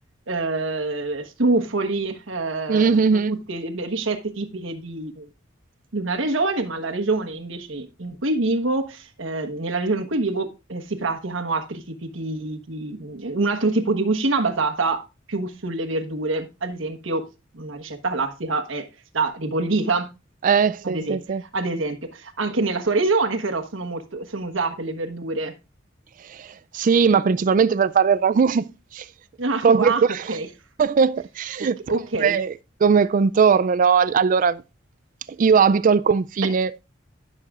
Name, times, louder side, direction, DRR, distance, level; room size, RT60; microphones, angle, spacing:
voice 1, 0.3-5.3 5.9-15.0 15.3-17.2 17.5-18.8 19.1-20.1 20.8-25.5 29.4-30.5 31.6-32.4, right 3 dB, 80° right, 1.3 m, -26 dB
voice 2, 2.7-3.3 20.4-21.4 26.3-26.5 26.7-28.7 28.9-29.0 29.6-30.4 30.8-31.8 32.2-32.5 32.8-34.6 35.4-36.7, right 6 dB, 40° right, 0.3 m, -19 dB
15.5 x 6.5 x 2.4 m
head